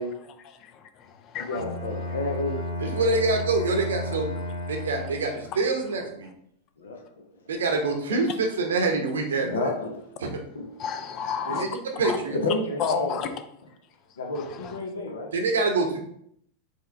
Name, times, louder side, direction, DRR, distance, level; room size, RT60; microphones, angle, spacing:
voice 1, 0.2-1.6 1.9-2.2 10.8-12.2 12.8-13.3 14.3-14.8, left 7 dB, 35° left, 8 dB, 0.5 m, -33 dB
Bowed string instrument, 1.5-5.5, left 1 dB, 90° left, 1.0 m, -33 dB
voice 2, 1.5-2.6 6.8-7.0 7.5-7.6 8.1-8.2 9.0-9.1 9.4-10.0 10.5-10.7 11.5-11.6 11.9-13.2 14.2-15.3, left 2 dB, 65° left, 2 dB, 0.9 m, -30 dB
voice 3, 2.8-4.3 4.7-6.3 7.5-9.7 10.2-10.3 11.5-11.7 12.0-12.4 15.3-16.0, right 3 dB, 65° right, 3 dB, 0.8 m, -25 dB
4.8 x 3.2 x 3.2 m, 0.69 s
figure-of-eight pair, 90°, 0 cm